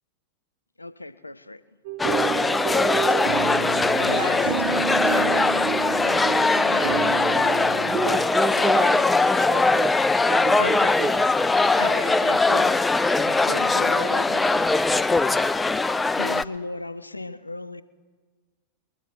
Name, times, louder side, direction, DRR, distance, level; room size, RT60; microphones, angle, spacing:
voice 1, 0.8-1.6 3.9-4.5 5.1-5.6 8.5-8.8 10.6-11.0 11.8-12.8 13.4-14.8 16.1-17.8, left 2 dB, 85° left, 15 dB, 0.4 m, -35 dB
sound 1, 1.8-8.3, right 10 dB, 45° right, 0.6 m, -30 dB
sound 2, 2.0-16.4, left 3 dB, 10° left, 0.3 m, -21 dB
voice 2, 3.1-7.6, right 2 dB, 85° right, 1 dB, 2.3 m, -39 dB
voice 3, 7.8-9.9 10.3-11.5 13.1-13.4, right 4 dB, 25° right, 8 dB, 1.0 m, -30 dB
21.5 x 9.9 x 4.6 m, 1.5 s
figure-of-eight pair, 90°, 0 cm